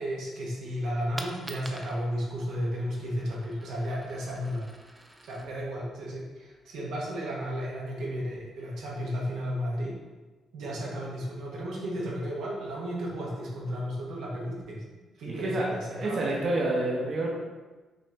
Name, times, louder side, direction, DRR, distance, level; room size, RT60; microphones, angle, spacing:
voice 1, 0.0-4.7 5.2-10.0 10.5-14.8 15.2-16.3, equal, 80° right, -4 dB, 1.1 m, -33 dB
Coin (dropping), 1.1-6.8, right 1 dB, 15° right, 0.5 m, -47 dB
voice 2, 15.3-17.3, right 2 dB, 50° right, -3 dB, 1.0 m, -28 dB
6.0 x 2.6 x 3.4 m, 1.3 s
cardioid pair, 90°, 0 cm